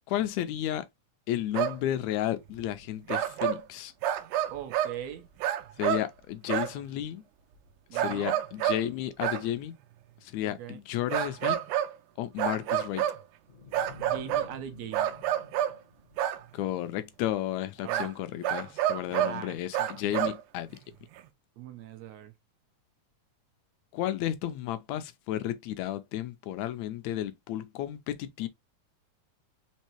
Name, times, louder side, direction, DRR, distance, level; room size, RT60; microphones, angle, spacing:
voice 1, 0.1-0.8 1.3-3.9 5.8-7.2 7.9-9.8 10.2-11.6 12.2-13.1 16.5-20.8 23.9-28.5, left 12 dB, 75° left, 1.8 m, -32 dB
sound 1, 1.5-1.8 2.6-2.7 3.1-3.6 4.0-5.0 5.4-6.1 6.5-6.7 8.0-8.9 9.2-9.4 11.1-12.0 12.4-13.2 13.7-14.5 14.9-15.8 16.2-16.4 17.9-18.1 18.4-19.4 19.7-20.4 21.2-21.3, right 11 dB, 90° right, 2.1 m, -28 dB
voice 2, 4.5-5.3 7.9-8.4 10.5-10.8 14.0-15.1 17.8-18.1 19.1-20.3 21.6-22.3, right 10 dB, 75° right, 1.7 m, -41 dB
sound 2, 13.5-16.7, left 5 dB, 55° left, 0.8 m, -50 dB
5.4 x 3.3 x 3.0 m
omnidirectional pair, 3.4 m